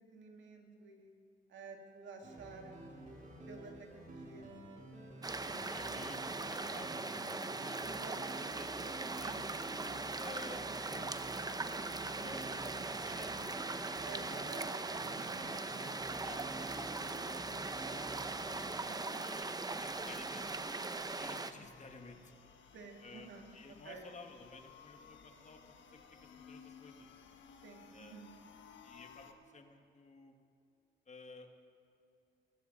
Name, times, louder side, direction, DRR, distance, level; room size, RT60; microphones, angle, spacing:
voice 1, 0.1-1.1 1.5-2.8 3.5-4.5 7.8-8.4 9.1-9.4 12.2-12.9 14.0-14.7 15.0-15.3 18.8-19.2 22.7-24.0 27.6-28.3, right 4 dB, 70° right, 2 dB, 2.5 m, -52 dB
sound 1, 2.2-18.7, right 1 dB, 40° right, 3.3 m, -51 dB
sound 2, 5.2-21.5, right 3 dB, 20° right, 0.8 m, -40 dB
voice 2, 5.3-7.8 8.5-8.9 9.1-9.6 10.2-11.4 12.2-13.4 14.2-14.5 15.1-18.3 19.1-20.5 21.2-22.3 23.0-25.6 25.9-27.1 27.9-28.3 28.8-30.3 31.1-31.5, left 3 dB, 35° left, 4 dB, 1.7 m, -54 dB
sound 3, 10.8-29.3, left 6 dB, 70° left, 1.5 m, -61 dB
22.0 x 15.0 x 4.0 m, 2.5 s
cardioid pair, 90°, 20 cm